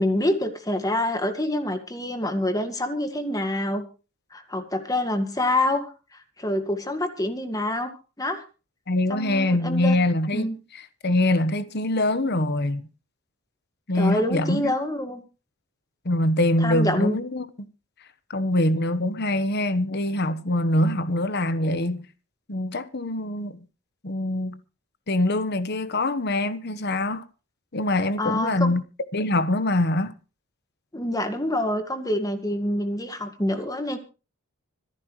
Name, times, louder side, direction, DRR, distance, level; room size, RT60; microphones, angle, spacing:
voice 1, 0.0-3.8 4.3-7.9 8.2-8.4 9.1-10.0 10.3-10.5 13.9-15.2 16.6-17.2 28.2-28.7 30.9-34.0, left 1 dB, 15° left, 1.9 m, -26 dB
voice 2, 8.9-12.9 13.9-14.7 16.0-17.4 18.3-22.1 22.5-23.6 24.0-24.6 25.1-27.2 27.7-28.8 29.1-30.1, left 1 dB, 50° left, 1.2 m, -24 dB
26.0 x 9.8 x 3.2 m
head